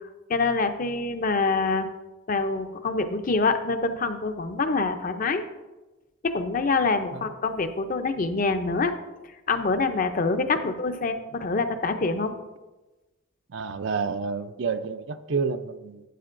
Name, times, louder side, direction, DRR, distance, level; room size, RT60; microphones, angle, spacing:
voice 1, 0.3-1.9 2.3-5.4 6.2-8.9 9.5-12.3, left 3 dB, 40° left, 8 dB, 0.5 m, -25 dB
voice 2, 13.5-16.0, right 5 dB, 60° right, 10 dB, 0.4 m, -29 dB
12.0 x 8.4 x 2.5 m, 1.1 s
head